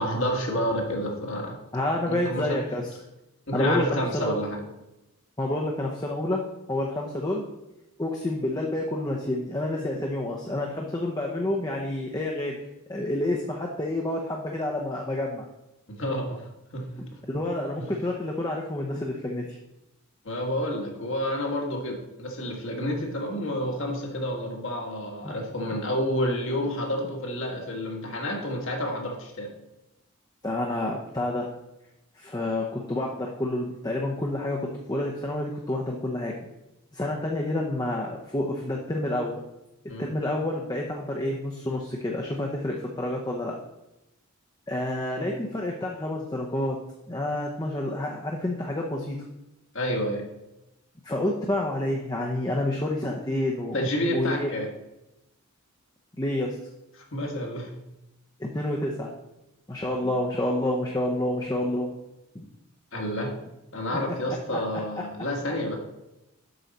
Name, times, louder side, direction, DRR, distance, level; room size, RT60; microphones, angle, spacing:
voice 1, 0.0-1.6 2.0-2.6 3.5-4.6 15.9-17.2 17.8-17.9 20.2-29.5 39.9-40.1 49.7-50.2 53.7-54.7 57.0-57.7 60.0-60.1 62.9-63.3 63.7-65.8, equal, 60° left, 1 dB, 1.5 m, -29 dB
voice 2, 1.7-2.9 3.5-4.4 5.4-7.5 8.0-12.6 12.9-15.4 17.3-19.5 25.2-25.3 30.4-31.5 32.2-36.3 36.9-39.4 40.0-43.6 44.7-46.8 47.1-49.2 51.0-54.5 56.2-56.6 58.4-59.1 59.7-61.9 62.3-62.5 64.5-64.6, left 1 dB, 20° left, -1 dB, 0.7 m, -29 dB
7.9 x 6.3 x 4.0 m, 0.94 s
head